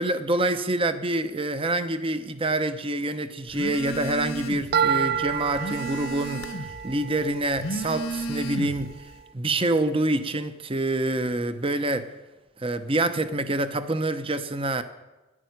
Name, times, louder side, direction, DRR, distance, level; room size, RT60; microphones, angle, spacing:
voice 1, 0.0-9.0 9.3-12.1 12.6-14.8, right 2 dB, 25° right, 11 dB, 0.8 m, -26 dB
Telephone, 3.5-4.8 5.1-6.8 7.4-8.9, right 1 dB, 70° left, 1.2 m, -33 dB
sound 1, 4.7-8.8, right 7 dB, 45° right, 0.5 m, -29 dB
11.0 x 11.0 x 9.4 m, 1.1 s
head